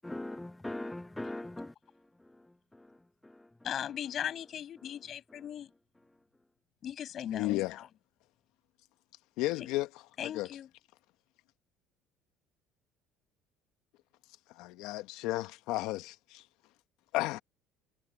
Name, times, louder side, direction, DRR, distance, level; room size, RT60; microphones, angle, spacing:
voice 1, 0.0-1.7 2.2-2.5 2.7-3.0 3.2-3.5, left 1 dB, 10° left, 1.4 m, -41 dB
voice 2, 3.6-5.7 6.8-7.9 9.6-9.7 10.2-10.7, left 9 dB, 50° left, 7.5 m, -38 dB
voice 3, 7.3-7.8 9.4-9.9 10.2-10.5 14.5-16.4 17.1-17.4, left 18 dB, 75° left, 1.1 m, -33 dB
supercardioid pair, 95°, 0 cm